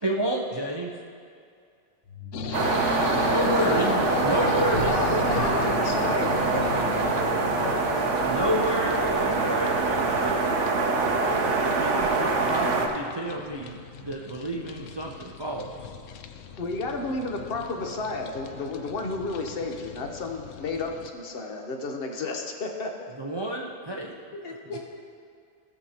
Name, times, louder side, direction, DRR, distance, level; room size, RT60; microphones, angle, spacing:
voice 1, 0.0-0.9 3.3-5.2 7.4-7.6 8.3-10.4 11.3-15.9 23.2-24.1 24.5-24.8, right 1 dB, 35° right, -1 dB, 0.4 m, -30 dB
sound 1, 2.0-7.0 7.5-7.6, left 4 dB, 25° left, 1.4 m, -47 dB
sound 2, 2.3-21.1, left 7 dB, 70° left, 0.9 m, -38 dB
sound 3, 2.5-12.9, right 3 dB, 60° right, 1.1 m, -24 dB
voice 2, 3.5-4.4 4.7-6.5 16.6-22.9, left 3 dB, 45° left, 3 dB, 1.0 m, -31 dB
voice 3, 4.2-4.6 4.9-6.0 6.5-7.0 24.3-24.8, left 3 dB, 90° left, 0 dB, 1.7 m, -34 dB
17.0 x 6.8 x 2.9 m, 2.3 s
omnidirectional pair, 1.5 m